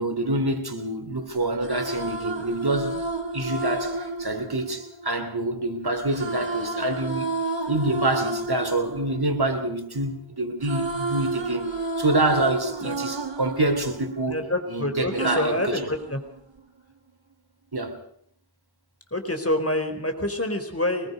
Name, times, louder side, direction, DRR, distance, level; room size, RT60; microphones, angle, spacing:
voice 1, 0.0-3.0 3.3-7.3 7.7-11.7 12.0-14.4 14.7-15.5 17.7-18.0, right 2 dB, 60° right, 3.5 m, -26 dB
sound 1, 1.4-5.5 6.1-10.1 10.4-14.7 15.2-16.6, right 2 dB, 90° right, 2.3 m, -31 dB
voice 2, 14.3-16.2 19.1-21.1, left 1 dB, 35° left, 4.1 m, -27 dB
24.0 x 20.5 x 5.3 m
wide cardioid pair, 45°, 43 cm